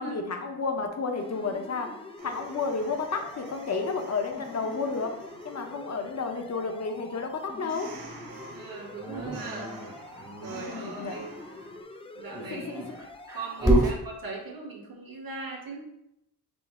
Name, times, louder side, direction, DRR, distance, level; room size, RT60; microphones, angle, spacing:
voice 1, 0.0-2.0 2.2-7.9 10.5-11.2 12.5-13.0 13.8-13.9, left 4 dB, 45° left, 5 dB, 0.7 m, -32 dB
sound 1, 1.2-13.8, left 2 dB, 15° left, 0.3 m, -46 dB
sound 2, 2.2-11.8, right 2 dB, 85° right, 0.9 m, -49 dB
voice 2, 8.5-9.8 10.4-11.3 12.1-12.9 13.3-15.9, right 3 dB, 60° right, -1 dB, 1.3 m, -39 dB
Dog, 9.0-10.6 12.2-14.0, right 1 dB, 10° right, 0.8 m, -28 dB
6.0 x 2.0 x 3.5 m, 0.83 s
cardioid pair, 75°, 38 cm